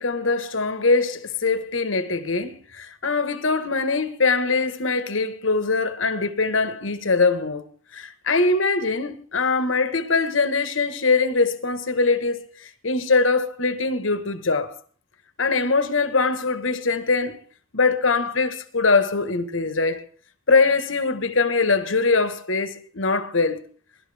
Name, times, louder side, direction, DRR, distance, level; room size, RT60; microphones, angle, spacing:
voice 1, 0.0-7.6 7.9-14.7 15.4-17.4 17.7-20.0 20.5-23.6, left 3 dB, 85° left, 1.5 m, -22 dB
23.0 x 12.0 x 3.5 m
head